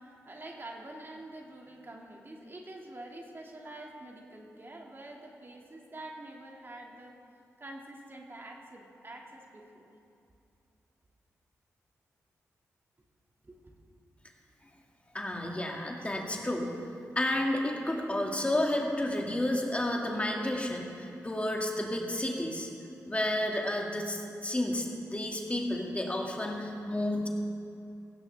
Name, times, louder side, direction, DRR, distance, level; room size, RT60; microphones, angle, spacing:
voice 1, 0.0-7.2 7.6-9.9 13.4-13.8, right 1 dB, 35° right, 0 dB, 2.2 m, -46 dB
voice 2, 15.1-16.7 17.2-22.7 23.0-27.3, left 1 dB, 20° left, 0 dB, 2.2 m, -31 dB
16.5 x 16.0 x 3.4 m, 2.6 s
cardioid pair, 50°, 6 cm